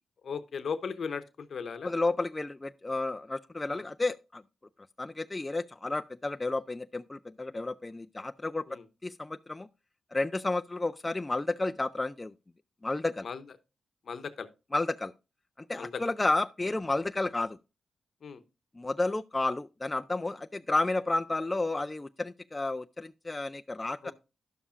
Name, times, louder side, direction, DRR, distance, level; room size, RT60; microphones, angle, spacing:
voice 1, 0.2-1.9 3.7-3.8 8.7-8.8 13.2-13.4 14.1-14.5 15.8-16.0 18.2-18.4 24.0-24.1, left 6 dB, 65° left, 0.8 m, -37 dB
voice 2, 1.8-4.4 5.0-8.6 9.0-9.7 10.1-12.3 12.8-13.3 14.7-15.1 15.7-17.6 18.8-24.1, left 2 dB, 25° left, 0.3 m, -31 dB
11.0 x 7.1 x 2.4 m
cardioid pair, 55°, 0 cm